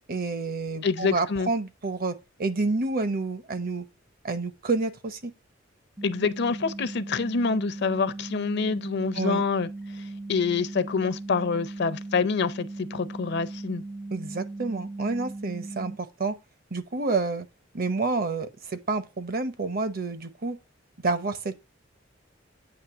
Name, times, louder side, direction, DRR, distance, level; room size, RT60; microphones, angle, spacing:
voice 1, 0.1-3.8 4.2-5.3 9.1-9.4 14.1-16.4 16.7-17.5 17.7-20.6 21.0-21.6, right 3 dB, 50° right, 0.8 m, -29 dB
voice 2, 0.8-1.5 6.0-13.8, left 5 dB, 60° left, 0.6 m, -27 dB
sound 1, 6.0-16.0, right 2 dB, 10° right, 0.3 m, -38 dB
8.7 x 2.9 x 5.8 m
head